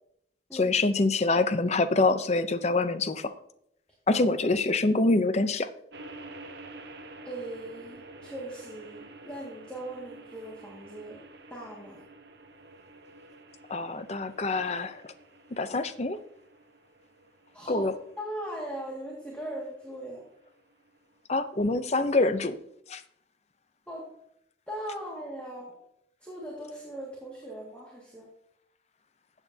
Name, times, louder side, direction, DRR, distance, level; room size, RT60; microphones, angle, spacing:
voice 1, 0.5-3.3 4.1-5.7 13.7-15.1 15.5-16.2 17.7-17.9 21.3-22.6 22.9-23.0, left 2 dB, 35° left, 12 dB, 0.6 m, -25 dB
sound 1, 5.9-21.2, right 2 dB, 60° right, 1.0 m, -50 dB
voice 2, 7.2-11.2 11.5-12.0 17.5-17.9 18.2-20.2 23.9-24.1 24.7-25.8 26.2-28.3, right 1 dB, 5° left, -4 dB, 2.0 m, -39 dB
15.0 x 8.3 x 2.8 m, 0.73 s
head